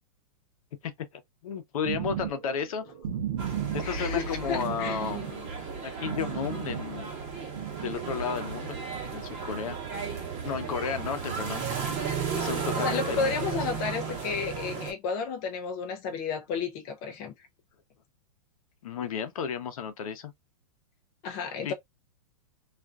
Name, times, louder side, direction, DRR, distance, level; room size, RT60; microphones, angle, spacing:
voice 1, 0.8-2.8 3.7-5.5 5.8-7.1 7.8-8.8 9.1-9.8 10.4-11.6 12.4-13.3 14.1-14.2 18.8-20.3 21.6-21.7, left 7 dB, 65° left, 0.7 m, -33 dB
sound 1, 1.8-7.3 7.5-8.0, right 10 dB, 65° right, 0.7 m, -35 dB
sound 2, 3.4-14.9, right 6 dB, 25° right, 1.0 m, -34 dB
voice 2, 3.8-5.0 12.7-17.3 21.2-21.7, left 5 dB, 20° left, 0.3 m, -32 dB
2.4 x 2.2 x 2.3 m
supercardioid pair, 160°, 19 cm